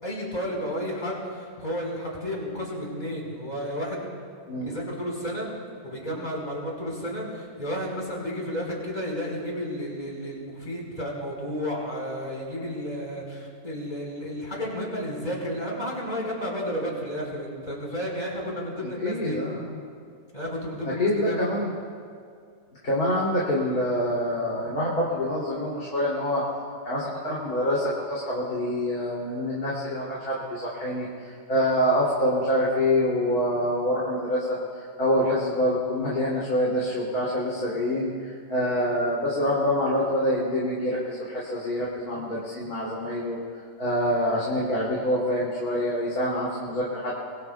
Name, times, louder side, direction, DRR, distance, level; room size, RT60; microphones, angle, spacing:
voice 1, 0.0-4.0 4.6-5.5 5.8-19.4 20.3-21.5, equal, 25° left, -3 dB, 4.9 m, -32 dB
voice 2, 19.0-19.7 20.8-21.7 22.8-26.4 26.8-43.4 43.8-47.2, left 1 dB, 55° left, -7 dB, 3.5 m, -26 dB
24.5 x 23.5 x 2.3 m, 2.3 s
omnidirectional pair, 1.9 m